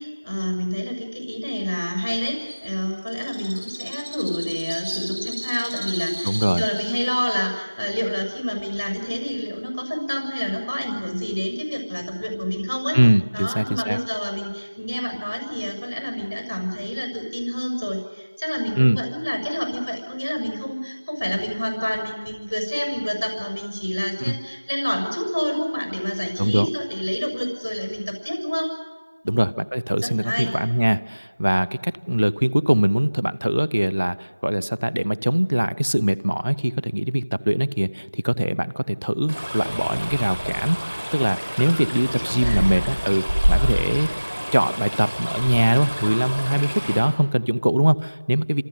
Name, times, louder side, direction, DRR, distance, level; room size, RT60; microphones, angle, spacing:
voice 1, 0.0-13.0 13.3-28.7 29.2-29.4 30.0-30.5 42.1-42.7, equal, 70° left, 4 dB, 6.7 m, -28 dB
Bird, 2.5-9.7, equal, 40° right, 6.4 m, -37 dB
voice 2, 6.2-6.6 12.9-14.0 18.8-19.0 24.2-24.4 26.4-26.7 29.3-44.1 44.5-48.6, equal, 60° right, 19 dB, 0.8 m, -22 dB
Stream, 39.3-47.0, equal, 25° right, 4.5 m, -27 dB
27.5 x 26.5 x 6.7 m, 1.3 s
figure-of-eight pair, 180°, 0 cm